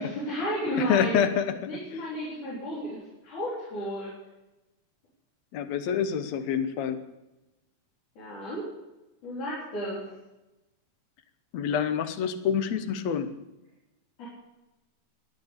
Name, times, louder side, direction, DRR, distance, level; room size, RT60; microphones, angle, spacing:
voice 1, 0.0-1.2 1.7-4.1 8.2-8.7 9.2-10.0 14.2-14.3, equal, 90° left, -7 dB, 5.3 m, -33 dB
voice 2, 0.9-1.5 5.5-7.0 11.5-13.3, left 8 dB, 70° left, 10 dB, 2.2 m, -27 dB
13.5 x 9.3 x 8.4 m, 0.99 s
omnidirectional pair, 3.4 m